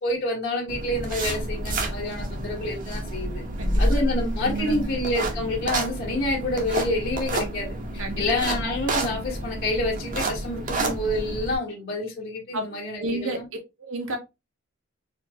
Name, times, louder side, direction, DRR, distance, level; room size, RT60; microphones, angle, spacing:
voice 1, 0.0-3.4 3.8-7.7 8.2-13.4, left 1 dB, 50° left, 1.5 m, -28 dB
sound 1, 0.7-11.5, right 1 dB, 40° right, 0.9 m, -29 dB
voice 2, 3.6-4.1 4.4-4.9 8.0-8.2 10.7-11.0 12.5-12.7 13.0-13.4 13.8-14.2, right 2 dB, 70° right, 1.0 m, -31 dB
4.3 x 2.6 x 2.8 m
head